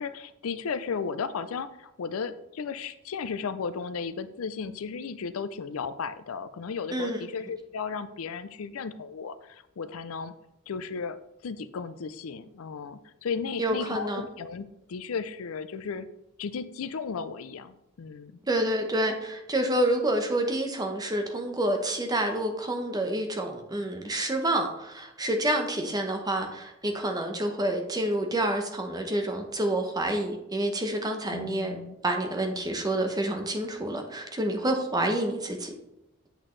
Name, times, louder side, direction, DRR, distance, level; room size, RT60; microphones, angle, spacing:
voice 1, 0.0-10.3 10.7-11.2 11.4-16.1 16.4-18.4 31.3-32.0, left 5 dB, 75° left, 13 dB, 0.5 m, -35 dB
voice 2, 13.6-14.3 18.5-31.8 32.0-35.7, right 1 dB, 20° right, 4 dB, 0.9 m, -28 dB
8.1 x 6.0 x 3.2 m, 0.87 s
head